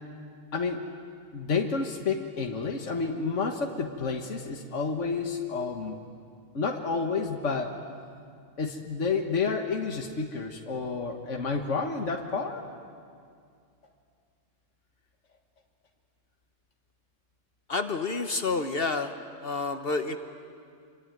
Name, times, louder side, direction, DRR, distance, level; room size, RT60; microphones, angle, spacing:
voice 1, 0.5-0.9 1.3-6.0 6.5-7.8 8.6-12.6, left 4 dB, 75° left, 3 dB, 1.9 m, -30 dB
voice 2, 17.7-19.1 19.4-20.2, left 3 dB, 50° left, 7 dB, 1.3 m, -29 dB
27.5 x 24.0 x 9.1 m, 2.2 s
omnidirectional pair, 1.3 m